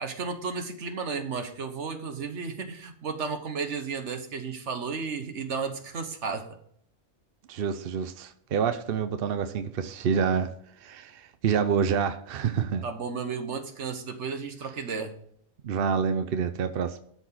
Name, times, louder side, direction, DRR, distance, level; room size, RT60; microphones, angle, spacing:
voice 1, 0.0-6.5 12.8-15.1, right 5 dB, 80° right, 7 dB, 1.5 m, -33 dB
voice 2, 7.5-10.5 10.8-12.8 15.6-17.0, right 7 dB, 60° right, 9 dB, 0.8 m, -27 dB
12.5 x 4.5 x 5.7 m, 0.66 s
omnidirectional pair, 1.2 m